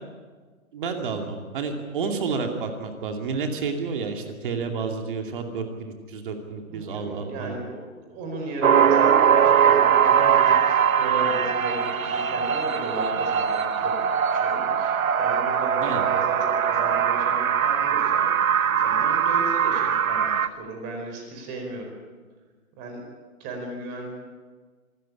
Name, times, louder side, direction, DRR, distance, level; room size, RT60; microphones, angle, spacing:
voice 1, 0.7-7.5 15.8-16.0, right 5 dB, 35° right, 4 dB, 2.5 m, -30 dB
voice 2, 6.7-13.9 14.3-18.3 18.7-21.9 22.8-23.0 23.4-24.1, right 2 dB, 20° right, 2 dB, 4.5 m, -35 dB
sound 1, 8.6-20.5, right 7 dB, 70° right, 1.2 m, -21 dB
25.5 x 14.0 x 10.0 m, 1.4 s
hypercardioid pair, 155°, 42 cm